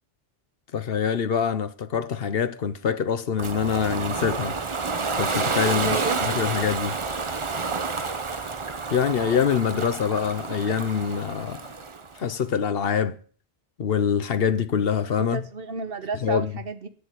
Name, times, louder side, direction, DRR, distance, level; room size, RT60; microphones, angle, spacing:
voice 1, 0.7-4.6 5.2-7.0 8.9-11.6 12.2-13.2 13.8-15.4 16.2-16.5, left 7 dB, 70° left, 1.0 m, -25 dB
Ocean, 3.4-12.2, right 4 dB, 30° right, 0.8 m, -29 dB
voice 2, 5.7-6.2 15.2-16.9, right 4 dB, 65° right, 1.2 m, -32 dB
9.4 x 6.8 x 8.2 m
omnidirectional pair, 1.1 m